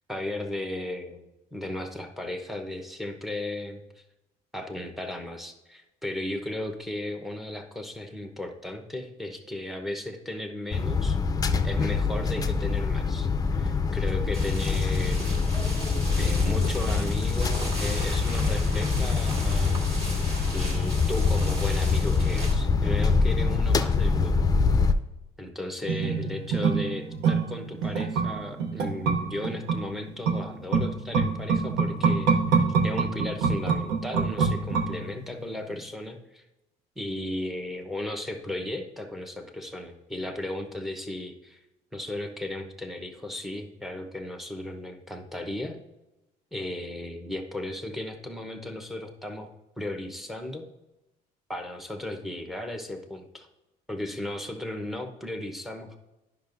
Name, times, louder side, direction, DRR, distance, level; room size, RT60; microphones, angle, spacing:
voice 1, 0.1-3.8 4.5-11.2 11.6-15.9 16.2-19.8 20.5-24.3 25.4-32.3 32.8-36.4 37.0-41.6 41.9-45.8 46.5-49.5 49.8-50.7 51.5-53.5 53.9-56.0, left 1 dB, ahead, 5 dB, 0.9 m, -35 dB
sound 1, 10.7-24.9, left 4 dB, 20° left, 0.5 m, -25 dB
sound 2, 14.3-22.6, equal, 35° right, 2.1 m, -36 dB
sound 3, 25.8-35.4 35.7-35.8, right 5 dB, 85° right, 0.9 m, -26 dB
10.5 x 5.7 x 2.6 m, 1.0 s
cardioid pair, 110°, 17 cm